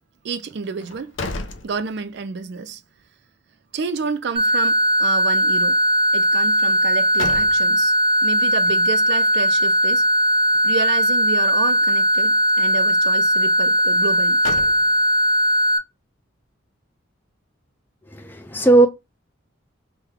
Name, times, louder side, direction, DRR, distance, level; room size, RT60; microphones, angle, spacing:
voice 1, 0.2-1.2 1.6-2.8 3.7-5.8 6.1-7.9 8.2-10.1 10.6-14.4, right 5 dB, 55° right, 0.4 m, -30 dB
sound 1, 0.8-2.4 2.8-2.9 6.7-8.0 14.0-15.3, left 3 dB, 70° left, 0.6 m, -34 dB
sound 2, 4.4-15.8, equal, 25° right, 0.7 m, -18 dB
voice 2, 18.1-18.9, right 2 dB, 10° left, 0.3 m, -16 dB
3.2 x 2.2 x 3.4 m
head